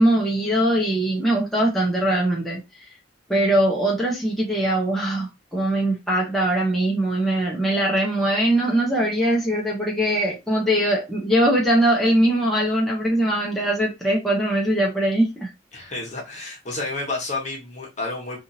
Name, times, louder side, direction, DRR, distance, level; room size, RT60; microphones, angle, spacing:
voice 1, 0.0-2.6 3.3-15.5, right 1 dB, ahead, 0.9 m, -21 dB
voice 2, 15.7-18.4, left 3 dB, 40° left, 1.2 m, -30 dB
3.5 x 2.6 x 2.7 m
head